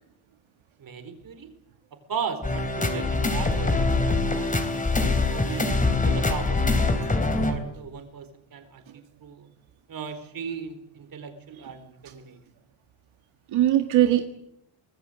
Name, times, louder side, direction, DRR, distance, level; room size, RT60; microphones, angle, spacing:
voice 1, 0.8-1.5 2.1-4.7 5.0-5.7 6.0-9.5 9.9-12.4, right 6 dB, 45° right, 9 dB, 4.3 m, -37 dB
sound 1, 2.4-7.5, left 3 dB, 15° left, 3.2 m, -24 dB
voice 2, 13.5-14.2, right 12 dB, 80° right, 6 dB, 1.8 m, -22 dB
25.0 x 20.5 x 8.1 m, 0.79 s
wide cardioid pair, 180°, 47 cm